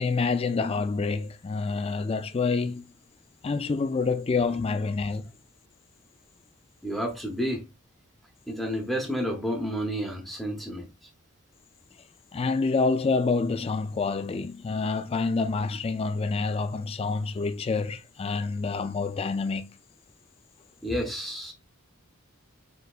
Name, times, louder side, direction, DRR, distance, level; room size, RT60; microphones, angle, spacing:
voice 1, 0.0-2.9 3.4-5.3 12.3-19.7, left 4 dB, 25° left, 0.3 m, -27 dB
voice 2, 6.8-7.6 8.5-11.1 20.8-21.5, equal, ahead, 0.7 m, -30 dB
4.3 x 3.9 x 2.4 m
head